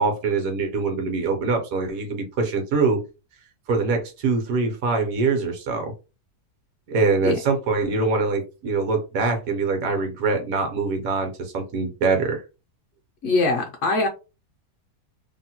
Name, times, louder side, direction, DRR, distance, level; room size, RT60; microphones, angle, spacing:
voice 1, 0.0-3.0 3.7-5.9 6.9-12.4, right 4 dB, 70° right, 4 dB, 1.1 m, -23 dB
voice 2, 13.2-14.1, left 3 dB, 70° left, 2 dB, 0.7 m, -22 dB
2.8 x 2.1 x 2.8 m, 0.30 s
omnidirectional pair, 1.6 m